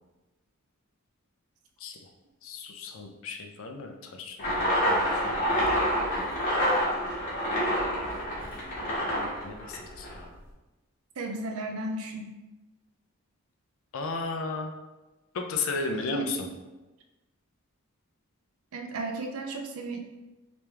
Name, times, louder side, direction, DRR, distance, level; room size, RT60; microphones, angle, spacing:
voice 1, 2.4-5.6 9.0-10.3 13.9-14.7 15.3-16.4, left 4 dB, 65° left, 3 dB, 0.4 m, -35 dB
sound 1, 4.4-10.2, equal, 40° left, 1.1 m, -27 dB
voice 2, 11.2-12.4 15.9-16.4 18.7-20.0, right 2 dB, 80° right, 3 dB, 0.5 m, -34 dB
3.3 x 3.0 x 3.3 m, 1.1 s
head